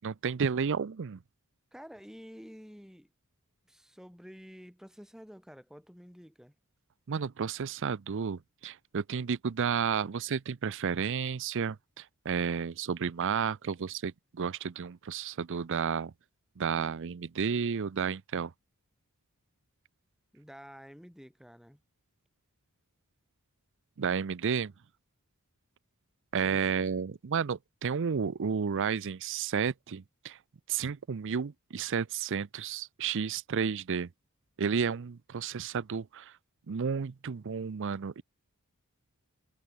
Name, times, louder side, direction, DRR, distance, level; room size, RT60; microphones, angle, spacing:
voice 1, 0.0-1.2 7.1-16.1 16.6-18.5 24.0-24.7 26.3-30.4 30.7-34.1 34.6-36.4 36.7-38.2, right 6 dB, 60° right, 0.5 m, -32 dB
voice 2, 1.7-3.1 3.7-6.5 20.3-21.8 26.4-26.9, equal, ahead, 7.2 m, -50 dB
head